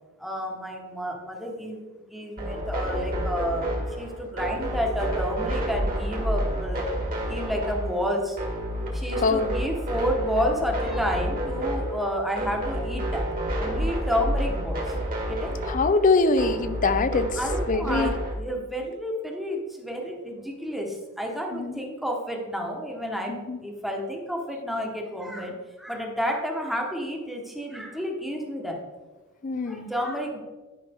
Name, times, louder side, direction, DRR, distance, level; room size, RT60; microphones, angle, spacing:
voice 1, 0.2-6.8 7.2-8.4 8.9-13.3 13.6-14.9 15.3-15.6 17.4-28.8 29.6-30.4, equal, ahead, 0 dB, 1.2 m, -30 dB
sound 1, 2.4-18.3, equal, 40° right, 1.8 m, -29 dB
voice 2, 9.2-9.5 15.7-17.4 17.7-18.1 21.5-21.8 23.3-23.6 29.4-29.9, left 3 dB, 35° left, 11 dB, 0.5 m, -23 dB
11.0 x 5.5 x 3.5 m, 1.3 s
head